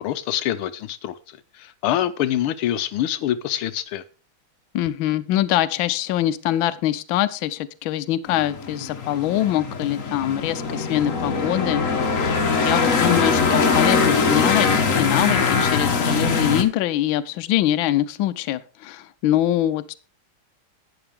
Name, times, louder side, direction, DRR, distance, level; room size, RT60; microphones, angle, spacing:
voice 1, 0.0-4.0, left 12 dB, 90° left, 1.6 m, -25 dB
voice 2, 4.7-12.2 12.6-20.0, left 12 dB, 75° left, 1.4 m, -23 dB
sound 1, 8.3-16.6, left 4 dB, 45° left, 1.3 m, -22 dB
12.0 x 8.8 x 3.5 m
omnidirectional pair, 2.3 m